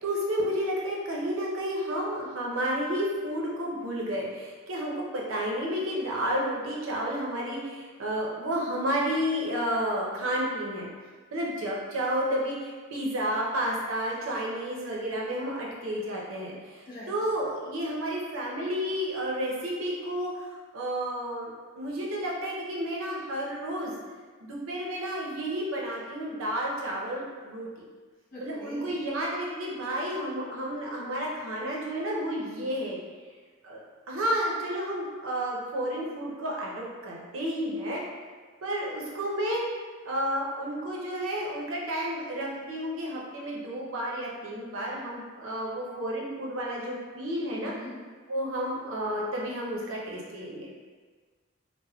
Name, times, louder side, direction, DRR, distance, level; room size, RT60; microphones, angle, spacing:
voice 1, 0.0-10.9 11.3-16.6 17.1-23.9 24.4-27.7 28.4-33.0 33.6-33.8 34.1-38.0 38.6-39.6 40.0-47.7 48.3-50.7, equal, 80° right, -3 dB, 0.6 m, -31 dB
voice 2, 28.3-28.8 47.6-47.9, equal, 45° left, -7 dB, 0.7 m, -42 dB
3.4 x 2.0 x 2.2 m, 1.5 s
head